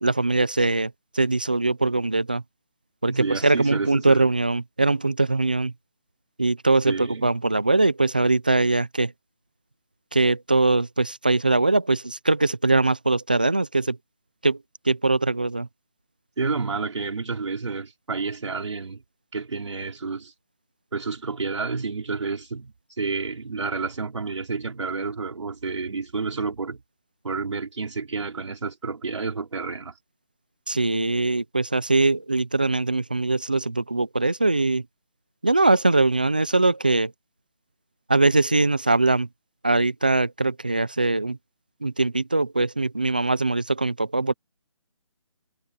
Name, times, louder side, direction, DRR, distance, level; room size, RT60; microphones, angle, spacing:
voice 1, 0.0-2.4 3.0-5.7 6.4-9.1 10.1-14.0 14.4-14.6 14.9-15.7 30.7-34.8 35.4-37.1 38.1-39.3 39.6-41.4 41.8-44.3, right 2 dB, 20° right, 0.3 m, -22 dB
voice 2, 3.1-4.3 6.9-7.3 16.4-19.0 19.3-20.3 20.9-26.8 27.2-29.9, right 4 dB, 70° right, 4.2 m, -30 dB
hypercardioid pair, 170°, 16 cm